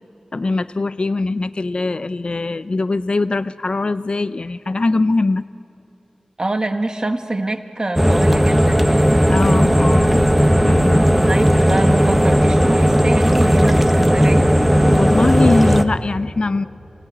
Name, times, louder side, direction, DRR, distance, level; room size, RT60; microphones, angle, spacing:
voice 1, 0.3-5.4 9.3-10.2 10.6-11.1 14.8-16.7, left 3 dB, 55° left, 14 dB, 0.5 m, -21 dB
voice 2, 6.4-9.2 11.3-14.5, right 2 dB, 40° right, 5 dB, 1.5 m, -25 dB
sound 1, 8.0-15.8, equal, 5° right, 1.0 m, -15 dB
28.0 x 17.5 x 9.8 m, 2.9 s
wide cardioid pair, 60°, 2 cm